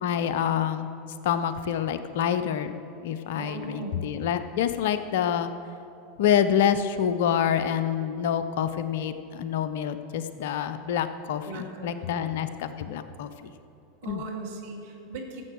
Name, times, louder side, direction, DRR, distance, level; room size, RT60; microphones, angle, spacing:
voice 1, 0.0-0.9 1.2-5.5 6.2-13.5 14.1-14.2, left 9 dB, 65° left, 11 dB, 0.6 m, -27 dB
voice 2, 3.4-4.0 11.5-12.2 14.0-15.4, right 3 dB, 60° right, 1 dB, 2.1 m, -38 dB
14.0 x 7.8 x 6.4 m, 2.7 s
figure-of-eight pair, 85°, 0 cm